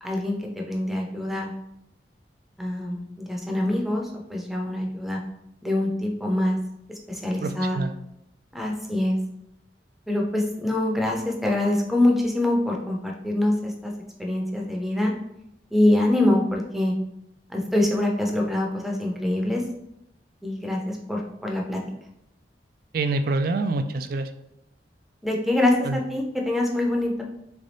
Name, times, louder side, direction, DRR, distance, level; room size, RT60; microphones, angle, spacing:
voice 1, 0.0-1.5 2.6-5.2 5.6-6.6 7.1-7.8 8.5-9.2 10.1-13.9 14.2-15.1 15.7-16.9 17.5-19.6 20.4-21.8 25.2-27.2, left 1 dB, ahead, 0 dB, 0.6 m, -24 dB
voice 2, 7.4-7.9 22.9-24.3 25.8-26.0, right 3 dB, 55° right, 8 dB, 0.3 m, -26 dB
3.7 x 3.4 x 4.0 m, 0.81 s
head